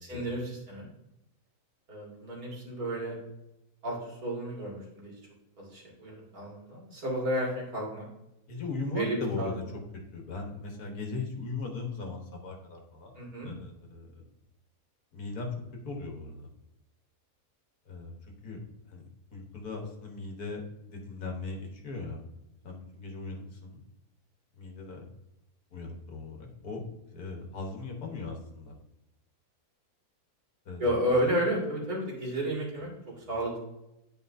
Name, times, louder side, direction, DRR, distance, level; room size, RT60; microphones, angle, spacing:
voice 1, 0.0-0.9 1.9-3.2 3.8-5.2 5.6-8.1 8.9-9.5 13.2-13.5 30.8-33.6, right 1 dB, 65° right, -4 dB, 2.6 m, -32 dB
voice 2, 8.5-9.6 10.1-13.1 13.4-14.1 15.1-15.5 15.8-16.5 17.9-18.1 18.4-18.6 18.9-22.2 22.6-23.8 24.5-25.0 25.7-26.8 27.1-28.7 30.7-30.8, left 3 dB, 70° left, 1 dB, 1.7 m, -38 dB
10.5 x 4.8 x 2.6 m, 0.89 s
omnidirectional pair, 1.7 m